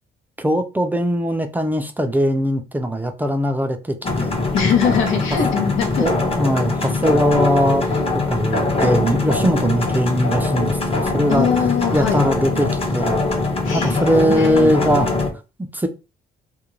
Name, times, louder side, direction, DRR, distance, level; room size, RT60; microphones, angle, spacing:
voice 1, 0.4-4.4 6.0-11.5 11.9-13.2 13.7-15.1 15.7-15.9, equal, 10° right, 0.4 m, -20 dB
sound 1, 4.0-15.3, left 3 dB, 30° left, 0.8 m, -22 dB
voice 2, 4.5-6.1 11.3-12.2 13.6-14.7, left 7 dB, 90° left, 0.8 m, -21 dB
2.4 x 2.2 x 3.1 m
cardioid pair, 90°, 20 cm